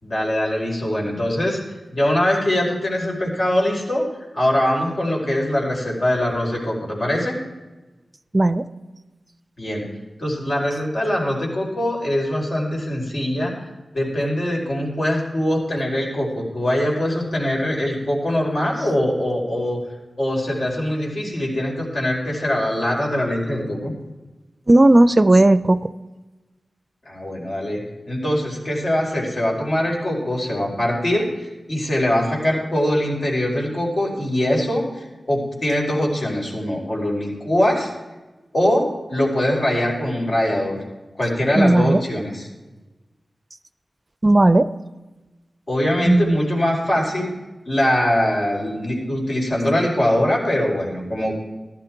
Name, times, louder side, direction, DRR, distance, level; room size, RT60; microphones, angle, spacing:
voice 1, 0.0-4.1 4.3-7.4 9.6-9.9 10.2-13.5 13.9-19.8 20.2-23.9 27.1-27.8 28.1-37.9 38.5-40.8 41.2-42.4 45.7-47.3 47.7-51.4, left 1 dB, 60° left, -2 dB, 4.6 m, -22 dB
voice 2, 8.3-8.6 24.7-25.9 41.5-42.0 44.2-44.7 46.0-46.4, right 1 dB, 35° right, 14 dB, 0.5 m, -15 dB
14.5 x 12.0 x 4.6 m, 1.1 s
wide cardioid pair, 65°, 0 cm